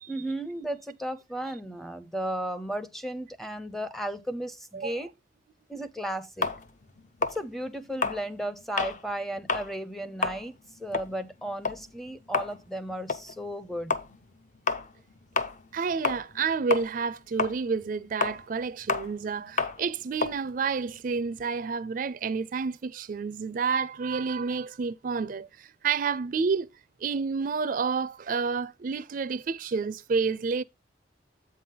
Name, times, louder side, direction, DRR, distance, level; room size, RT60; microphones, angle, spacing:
voice 1, 0.1-5.1 5.7-6.5 7.2-14.0, right 1 dB, ahead, 0.5 m, -34 dB
voice 2, 4.7-5.1 15.7-26.7 27.0-30.6, right 5 dB, 50° right, 0.4 m, -29 dB
sound 1, 6.4-9.0 9.4-9.7 10.1-16.4 16.7-21.5, left 4 dB, 45° left, 0.6 m, -31 dB
7.9 x 5.5 x 3.8 m
head